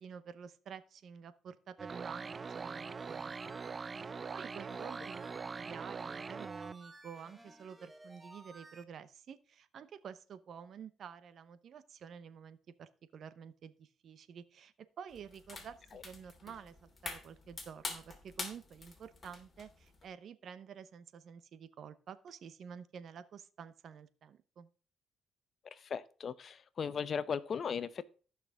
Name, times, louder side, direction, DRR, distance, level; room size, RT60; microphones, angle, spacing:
voice 1, 0.0-15.8 16.0-24.7, right 7 dB, 60° right, 14 dB, 0.9 m, -50 dB
sound 1, 1.8-6.7, right 5 dB, 35° right, 0.4 m, -42 dB
sound 2, 2.0-8.8, right 1 dB, 10° right, 1.1 m, -56 dB
sound 3, 15.1-20.1, left 3 dB, 30° left, 2.8 m, -46 dB
voice 2, 25.7-28.0, left 6 dB, 50° left, 16 dB, 0.7 m, -37 dB
15.0 x 6.0 x 3.6 m, 0.38 s
cardioid pair, 90°, 0 cm